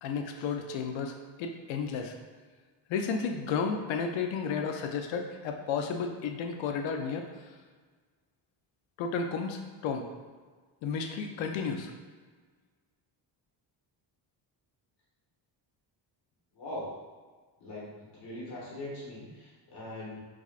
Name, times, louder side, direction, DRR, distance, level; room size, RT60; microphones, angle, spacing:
voice 1, 0.0-2.1 2.9-7.3 9.0-10.1 10.8-11.9, left 5 dB, 85° left, 4 dB, 0.6 m, -32 dB
voice 2, 16.5-16.9 17.6-20.2, left 1 dB, 65° left, -6 dB, 1.2 m, -41 dB
4.8 x 2.4 x 2.4 m, 1.5 s
cardioid pair, 165°, 45 cm